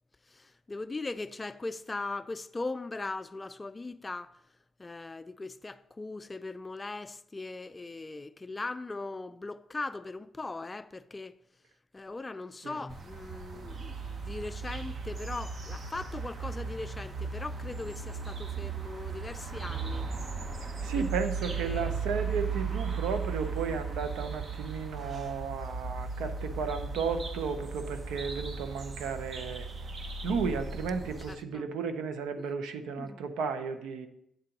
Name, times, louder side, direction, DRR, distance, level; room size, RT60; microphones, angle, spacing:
voice 1, 0.3-4.4 4.8-11.4 11.9-20.1 20.9-21.9 31.0-31.6 32.4-32.5 33.0-33.2, left 3 dB, 20° left, 0.3 m, -39 dB
sound 1, 12.9-31.3, right 5 dB, 45° right, 0.8 m, -36 dB
voice 2, 20.6-29.7 30.2-34.1, right 5 dB, 90° right, 0.7 m, -34 dB
8.2 x 3.8 x 5.8 m
cardioid pair, 90°, 0 cm